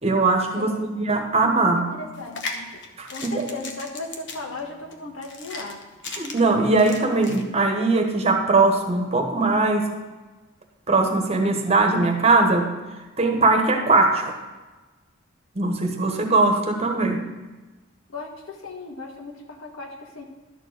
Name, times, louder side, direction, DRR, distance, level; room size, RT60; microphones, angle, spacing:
voice 1, 0.0-1.8 3.0-3.5 6.1-9.9 10.9-12.7 13.2-14.4 15.5-17.2, right 3 dB, 30° right, 3 dB, 1.1 m, -20 dB
voice 2, 1.5-2.7 3.1-5.8 18.1-20.2, left 2 dB, 85° left, 2 dB, 1.4 m, -36 dB
sound 1, 2.1-7.4, left 3 dB, 60° left, 1.0 m, -37 dB
12.0 x 4.5 x 6.4 m, 1.2 s
head